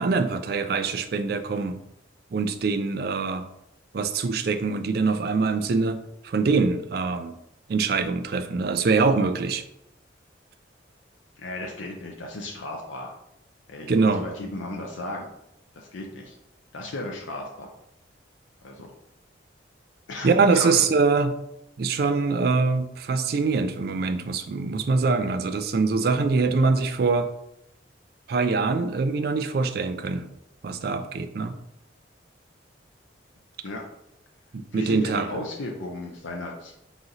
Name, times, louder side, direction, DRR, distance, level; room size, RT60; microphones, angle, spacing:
voice 1, 0.0-1.8 2.3-3.5 3.9-7.3 7.7-9.6 13.9-14.3 20.2-21.3 21.8-27.3 28.3-30.3 30.6-31.6 34.5-35.3, right 4 dB, 50° right, 9 dB, 0.3 m, -24 dB
voice 2, 11.4-13.1 13.7-15.3 15.7-16.3 16.7-17.7 18.6-18.9 20.1-20.8 33.6-33.8 34.7-36.7, left 2 dB, 85° left, 1 dB, 0.6 m, -35 dB
3.9 x 3.0 x 3.9 m, 0.82 s
head